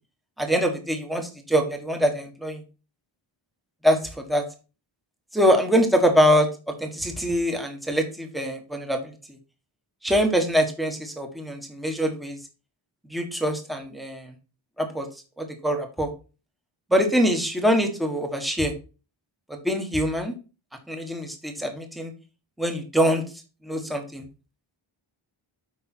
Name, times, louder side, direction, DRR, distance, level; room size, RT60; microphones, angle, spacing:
voice 1, 0.4-2.6 3.8-4.4 5.3-9.1 10.0-12.4 13.1-14.3 14.8-15.1 15.4-16.1 16.9-18.7 19.5-20.3 20.9-22.1 22.6-23.2 23.6-24.2, equal, ahead, 4 dB, 1.3 m, -24 dB
8.7 x 5.5 x 4.4 m, 0.33 s
wide cardioid pair, 155°, 49 cm